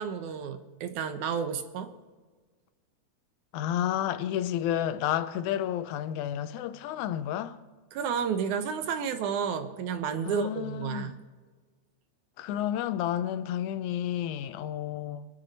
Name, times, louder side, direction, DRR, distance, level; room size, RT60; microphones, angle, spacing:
voice 1, 0.0-1.9 7.9-11.2, right 7 dB, 90° right, 2.5 m, -31 dB
voice 2, 3.5-7.6 10.2-11.1 12.4-15.3, left 11 dB, 85° left, 2.1 m, -31 dB
24.0 x 9.3 x 4.2 m
omnidirectional pair, 3.3 m